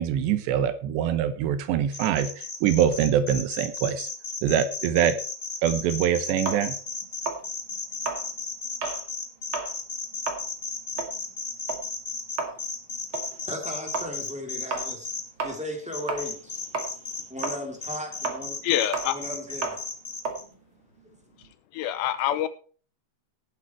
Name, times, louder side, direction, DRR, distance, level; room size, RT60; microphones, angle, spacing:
voice 1, 0.0-2.3 2.6-4.1 4.4-5.2 5.6-6.8, right 9 dB, 75° right, 12 dB, 3.1 m, -24 dB
sound 1, 1.9-15.2 15.9-17.5 17.8-20.4, left 4 dB, 35° left, 1.3 m, -34 dB
sound 2, 6.4-9.1 9.4-9.8 10.1-16.5 16.7-21.5, right 4 dB, 40° right, 2.1 m, -34 dB
voice 2, 13.1-15.1 15.4-16.6 17.3-18.6 19.1-19.8, left 1 dB, ahead, 2 dB, 1.9 m, -36 dB
voice 3, 18.6-19.2 21.7-22.5, left 11 dB, 80° left, 12 dB, 3.0 m, -25 dB
16.5 x 8.3 x 4.6 m, 0.40 s
omnidirectional pair, 5.2 m